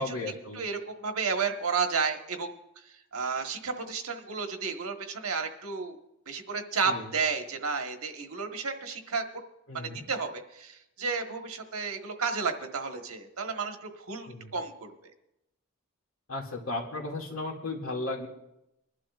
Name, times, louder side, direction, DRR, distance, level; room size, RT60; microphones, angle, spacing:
voice 1, 0.0-0.6 6.8-7.1 9.7-10.0 14.3-14.5 16.3-18.3, left 2 dB, 70° left, 0 dB, 2.3 m, -35 dB
voice 2, 0.5-2.6 3.1-6.0 6.3-9.2 9.7-14.9, right 5 dB, 85° right, 5 dB, 1.3 m, -32 dB
24.5 x 11.5 x 2.4 m, 0.85 s
head